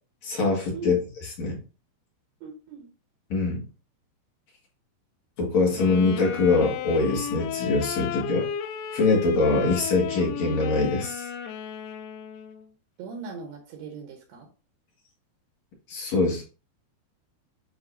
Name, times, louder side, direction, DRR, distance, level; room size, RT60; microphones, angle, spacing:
voice 1, 0.2-1.0 1.4-1.6 3.3-3.6 5.4-8.5 8.9-11.3 15.9-16.4, left 3 dB, 50° left, -2 dB, 2.5 m, -23 dB
voice 2, 2.4-2.9 13.0-14.5, right 4 dB, 75° right, 1 dB, 3.2 m, -39 dB
Wind instrument woodwind instrument, 5.7-12.7, left 8 dB, 80° left, 2.6 m, -33 dB
10.0 x 3.9 x 2.6 m, 0.34 s
omnidirectional pair, 4.9 m